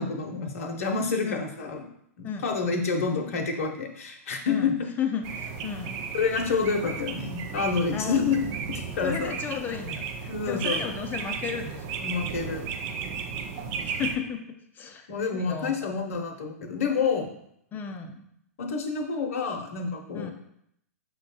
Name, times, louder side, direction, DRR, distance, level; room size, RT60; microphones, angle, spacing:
voice 1, 0.0-1.9 2.2-4.7 6.1-8.4 8.7-9.3 10.3-10.9 12.0-12.7 15.1-17.3 18.6-20.3, left 5 dB, 65° left, 3 dB, 0.7 m, -28 dB
voice 2, 4.5-6.0 7.9-8.3 9.0-12.0 13.8-14.4 14.7-16.1 17.7-18.2 20.1-20.3, left 7 dB, 20° left, 6 dB, 0.5 m, -34 dB
sound 1, 5.2-14.2, right 6 dB, 40° right, 0.5 m, -34 dB
5.9 x 2.2 x 4.0 m, 0.73 s
hypercardioid pair, 115°, 8 cm